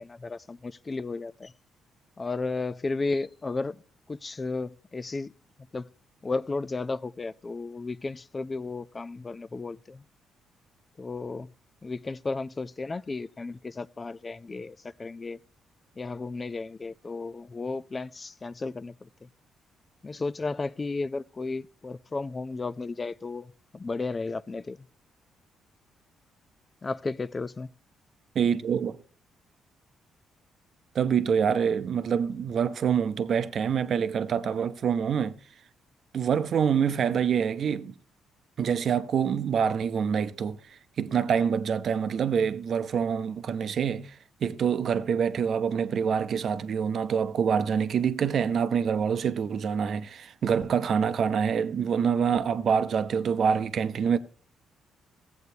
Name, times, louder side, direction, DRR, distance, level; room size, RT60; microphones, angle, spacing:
voice 1, 0.0-1.5 2.2-3.8 4.1-5.3 5.7-5.9 6.2-10.0 11.0-11.5 11.8-15.4 16.0-19.1 20.0-24.8 26.8-27.7, left 3 dB, 30° left, 0.3 m, -34 dB
voice 2, 28.3-29.0 30.9-35.3 36.1-37.9 38.6-40.6 41.0-44.1 44.4-54.2, right 7 dB, 60° right, 0.6 m, -26 dB
15.0 x 7.9 x 2.7 m
cardioid pair, 90°, 0 cm